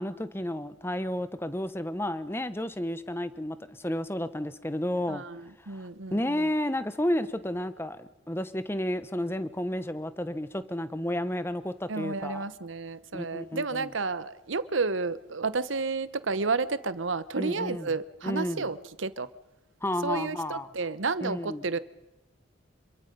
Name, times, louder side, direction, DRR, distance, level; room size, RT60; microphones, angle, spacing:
voice 1, 0.0-5.2 5.7-12.4 13.1-13.9 17.4-17.9 18.2-18.7 19.8-20.7 21.2-21.6, left 1 dB, 10° left, 1.0 m, -32 dB
voice 2, 5.1-6.5 11.9-19.3 20.0-21.8, right 4 dB, 75° right, 1.0 m, -31 dB
27.0 x 23.5 x 5.4 m
head